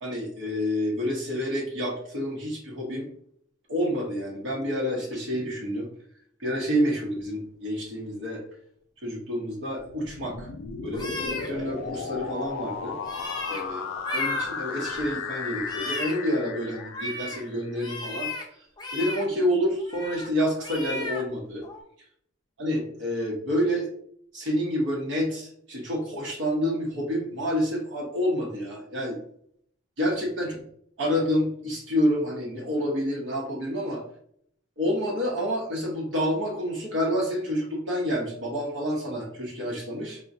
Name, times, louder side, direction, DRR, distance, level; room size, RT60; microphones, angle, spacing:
voice 1, 0.0-3.1 3.7-5.9 6.4-8.4 9.0-10.5 10.8-13.8 14.1-18.3 18.9-21.6 22.6-23.9 24.3-29.2 30.0-30.6 31.0-34.0 34.8-40.2, equal, 70° right, -3 dB, 0.8 m, -28 dB
sound 1, 9.9-17.8, left 5 dB, 85° left, 0.4 m, -35 dB
sound 2, 10.9-11.5 13.0-13.6 13.9-14.5 14.8-15.1 15.5-16.1 16.7-17.4 17.8-18.4 18.8-19.2 19.8-20.3 20.6-21.2 21.6-21.8, left 2 dB, 20° left, 0.4 m, -34 dB
3.7 x 2.1 x 2.5 m, 0.66 s
head